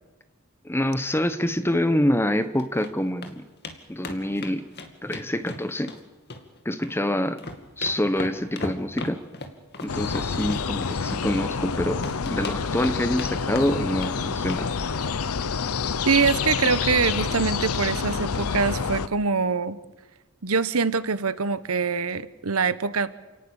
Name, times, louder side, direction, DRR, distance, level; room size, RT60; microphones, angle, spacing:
voice 1, 0.6-3.4 3.9-4.7 5.0-5.9 6.6-7.4 7.8-9.2 9.8-14.7, left 1 dB, 10° left, 11 dB, 1.1 m, -26 dB
sound 1, 2.4-2.9 3.2-3.3 3.6-3.8 4.0-6.0 6.3-7.0 7.3-11.7 12.0-13.3 13.6-14.2 14.5-14.7 14.9-15.1 15.4-15.5 15.8-15.9, left 2 dB, 50° left, 2.4 m, -37 dB
sound 2, 9.9-19.1, left 5 dB, 85° left, 0.8 m, -28 dB
voice 2, 16.1-19.8 20.4-23.1, right 5 dB, 80° right, 15 dB, 1.1 m, -24 dB
29.0 x 18.5 x 7.2 m, 1.2 s
head